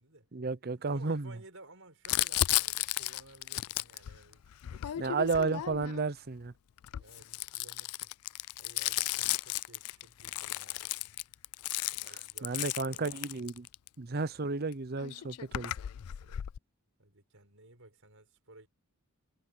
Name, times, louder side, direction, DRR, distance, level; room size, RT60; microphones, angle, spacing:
voice 1, 0.3-1.3 5.0-6.5 12.1-13.7 14.0-15.7, right 4 dB, 45° right, 0.7 m, -33 dB
voice 2, 0.9-5.2 5.6-5.7 6.9-8.1 8.6-10.9 11.9-13.2 14.1-14.4 16.0-16.5 17.0-18.7, right 2 dB, 60° right, 6.8 m, -56 dB
Crumpling crinkling, 2.1-6.1 6.8-13.9 14.7-14.8 15.0-16.6, left 15 dB, 85° left, 0.4 m, -34 dB
head